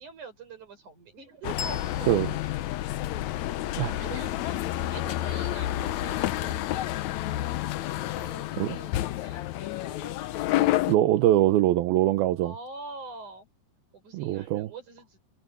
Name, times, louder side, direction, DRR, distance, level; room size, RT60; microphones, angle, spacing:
voice 1, 0.0-2.1 3.8-6.6 8.0-10.2 12.4-13.5 13.9-15.2, right 4 dB, 55° right, 8.0 m, -44 dB
sound 1, 1.4-11.0, left 14 dB, 85° left, 1.6 m, -29 dB
Bell, 1.6-4.7, left 6 dB, 55° left, 3.7 m, -43 dB
voice 2, 10.9-12.5 14.1-14.7, right 14 dB, 85° right, 2.8 m, -23 dB
omnidirectional pair, 4.2 m